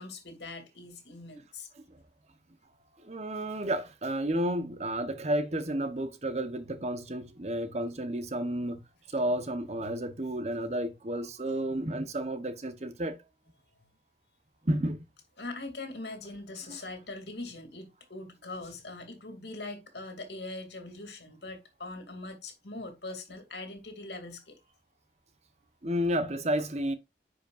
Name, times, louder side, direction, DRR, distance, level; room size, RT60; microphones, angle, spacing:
voice 1, 0.0-1.7 15.4-24.6, left 2 dB, 75° left, 2.5 m, -42 dB
voice 2, 3.0-8.8 9.1-13.2 14.6-15.0 16.7-16.8 25.8-26.9, right 1 dB, 40° right, 1.0 m, -31 dB
10.5 x 5.1 x 2.5 m
head